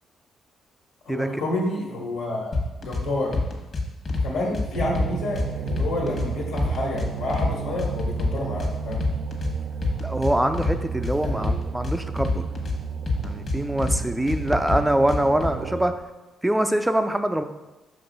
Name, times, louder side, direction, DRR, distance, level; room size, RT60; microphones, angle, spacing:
voice 1, 1.0-3.3 4.2-9.0 11.1-11.5, left 2 dB, 90° left, -3 dB, 1.6 m, -29 dB
sound 1, 2.5-3.0 3.3-4.3 4.5-6.3 6.6-7.5 7.8-9.5 9.8-10.7 11.0-12.8 13.1-14.0 14.3-15.5, left 3 dB, 40° left, 1.3 m, -26 dB
sound 2, 4.8-16.0, right 7 dB, 70° right, 0.4 m, -33 dB
voice 2, 10.0-12.5 13.2-15.9 16.4-17.4, right 1 dB, 10° right, 9 dB, 0.4 m, -24 dB
6.0 x 3.2 x 5.2 m, 1.1 s
cardioid pair, 90°, 0 cm